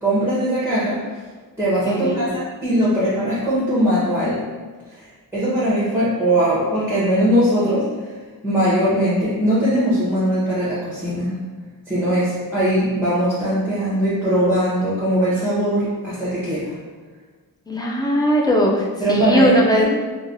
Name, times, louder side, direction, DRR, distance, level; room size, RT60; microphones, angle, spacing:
voice 1, 0.0-1.0 1.6-4.4 5.3-7.9 8.4-11.3 11.9-16.7 19.0-19.5 19.8-19.9, right 1 dB, 5° right, -10 dB, 0.8 m, -20 dB
voice 2, 1.8-2.3 17.7-19.9, equal, 10° left, -2 dB, 0.4 m, -19 dB
3.1 x 2.3 x 2.5 m, 1.4 s
wide cardioid pair, 100°, 39 cm